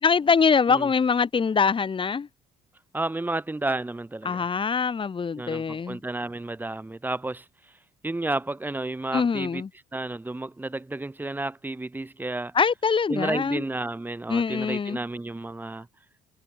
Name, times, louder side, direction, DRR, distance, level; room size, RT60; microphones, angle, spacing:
voice 1, 0.0-2.3 4.2-6.0 9.1-9.7 12.5-13.6 14.3-15.0, left 5 dB, 30° left, 2.7 m, -23 dB
voice 2, 2.9-4.4 5.4-7.4 8.0-9.6 9.9-12.5 13.1-15.9, right 2 dB, 10° right, 1.3 m, -31 dB
cardioid pair, 110°, 17 cm